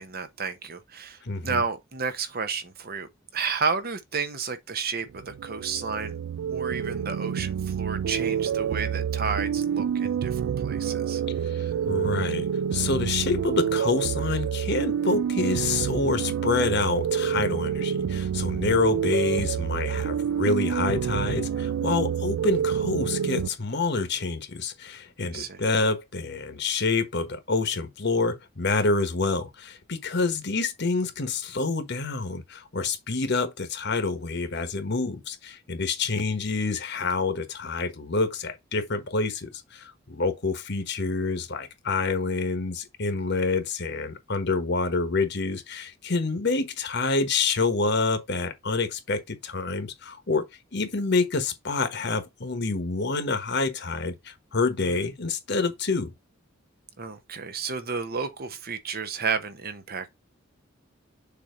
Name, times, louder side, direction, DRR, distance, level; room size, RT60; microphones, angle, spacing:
voice 1, 0.0-6.2 6.5-11.2 25.3-25.6 54.8-55.0 57.0-60.2, right 5 dB, 50° right, 1.0 m, -32 dB
voice 2, 1.2-1.6 11.4-50.4 50.7-56.1, left 3 dB, 55° left, 1.3 m, -27 dB
sound 1, 5.1-23.5, right 8 dB, 85° right, 0.3 m, -28 dB
6.9 x 2.9 x 5.0 m
head